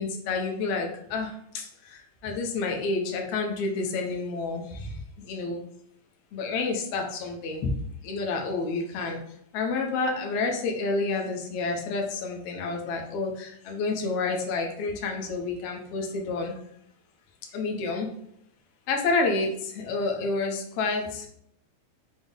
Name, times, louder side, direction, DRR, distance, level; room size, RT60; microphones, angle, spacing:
voice 1, 0.0-5.6 6.3-7.8 8.0-9.2 9.5-16.5 17.5-18.1 18.9-21.3, left 3 dB, 75° left, 2 dB, 1.5 m, -29 dB
5.5 x 2.0 x 3.7 m, 0.71 s
omnidirectional pair, 3.4 m